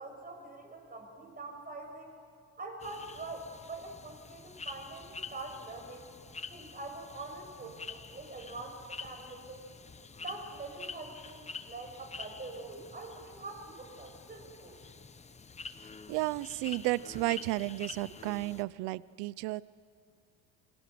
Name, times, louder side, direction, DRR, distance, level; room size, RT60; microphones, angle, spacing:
voice 1, 0.0-2.1 2.6-6.1 6.5-9.6 10.2-14.8, right 2 dB, 20° right, 3 dB, 5.8 m, -44 dB
sound 1, 2.8-18.6, left 5 dB, 15° left, 0.9 m, -47 dB
voice 2, 16.1-19.6, right 20 dB, 90° right, 19 dB, 0.6 m, -33 dB
28.0 x 24.0 x 7.8 m, 2.3 s
cardioid pair, 130°, 39 cm